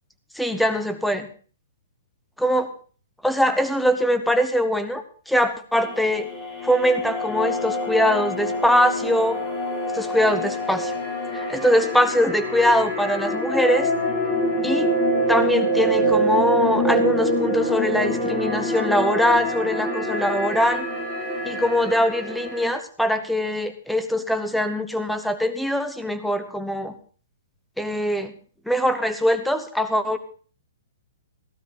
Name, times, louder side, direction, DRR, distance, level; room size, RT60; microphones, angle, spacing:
voice 1, 0.3-1.3 2.4-2.7 3.2-6.3 6.6-9.4 9.9-10.9 11.3-13.9 14.6-14.9 15.3-20.9 21.4-26.9 27.8-28.3 28.7-30.2, equal, ahead, 9 dB, 1.0 m, -22 dB
sound 1, 5.8-22.7, equal, 20° left, 3.6 m, -25 dB
16.0 x 12.0 x 3.8 m, 0.41 s
hypercardioid pair, 165°, 0 cm